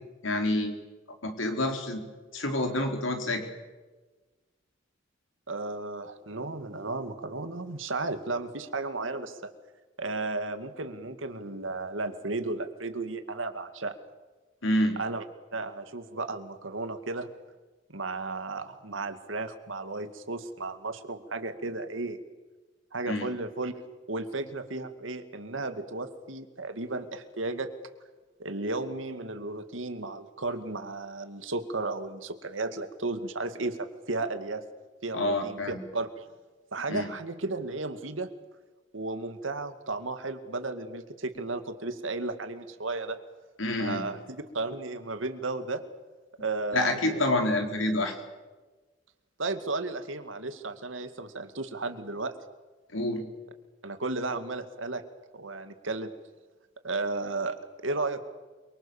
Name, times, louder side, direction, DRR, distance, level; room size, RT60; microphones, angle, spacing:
voice 1, 0.2-0.8 1.2-2.0 2.3-3.4 14.6-15.0 23.1-23.3 35.1-35.8 36.9-37.1 43.6-44.0 46.7-48.1 52.9-53.3, left 1 dB, 85° left, 4 dB, 4.4 m, -27 dB
voice 2, 5.5-9.5 10.0-14.0 15.0-15.2 15.5-17.3 17.9-22.2 22.9-23.7 24.1-27.7 28.4-34.6 35.0-36.3 36.7-38.3 38.9-43.2 43.8-45.8 46.4-47.3 49.4-52.3 53.8-55.0 55.3-56.1 56.8-58.3, right 3 dB, 85° right, 9 dB, 2.3 m, -34 dB
28.5 x 24.0 x 7.3 m, 1.3 s
head